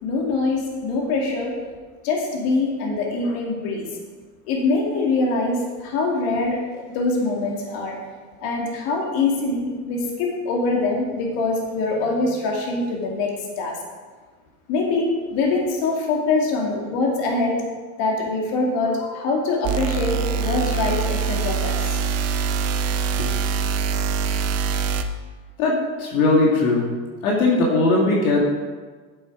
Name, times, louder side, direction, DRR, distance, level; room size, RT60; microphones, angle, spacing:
voice 1, 0.0-1.5 2.0-3.8 4.5-8.0 8.4-13.3 13.6-13.7 14.7-17.6 18.0-22.0 23.2-23.3, left 3 dB, 60° left, -1 dB, 2.4 m, -24 dB
sound 1, 19.6-25.0, right 5 dB, 40° right, 0.7 m, -24 dB
voice 2, 25.6-26.9 27.2-28.6, left 2 dB, 85° left, -2 dB, 2.2 m, -19 dB
8.2 x 8.0 x 4.9 m, 1.4 s
supercardioid pair, 115°, 41 cm